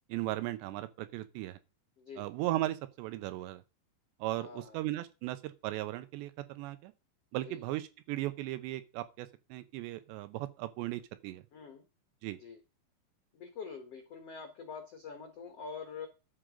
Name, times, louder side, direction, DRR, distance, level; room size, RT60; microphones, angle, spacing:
voice 1, 0.1-1.6 2.2-3.6 4.2-6.9 7.3-11.4 12.2-12.4, right 16 dB, 80° right, 2.9 m, -37 dB
voice 2, 2.0-2.3 4.4-4.8 7.4-7.6 11.5-11.8 12.4-12.6 13.3-16.1, left 5 dB, 75° left, 1.4 m, -45 dB
11.5 x 7.6 x 5.1 m
omnidirectional pair, 5.2 m